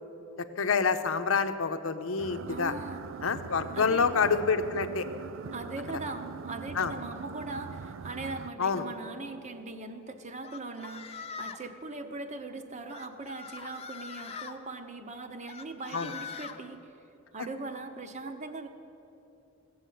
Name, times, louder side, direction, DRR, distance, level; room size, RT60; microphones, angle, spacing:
voice 1, 0.6-2.7 3.2-5.1 6.8-6.9 8.6-8.8 15.9-16.1, left 5 dB, 85° left, 9 dB, 0.7 m, -27 dB
sound 1, 2.2-8.5, right 6 dB, 75° right, 0.4 m, -42 dB
voice 2, 2.5-3.0 3.7-4.1 5.5-16.9 17.3-18.7, right 3 dB, 35° right, 7 dB, 0.8 m, -40 dB
sound 2, 10.4-11.7 12.9-14.5 15.5-16.6, left 6 dB, 30° left, 0.6 m, -42 dB
15.5 x 7.1 x 9.3 m, 2.8 s
head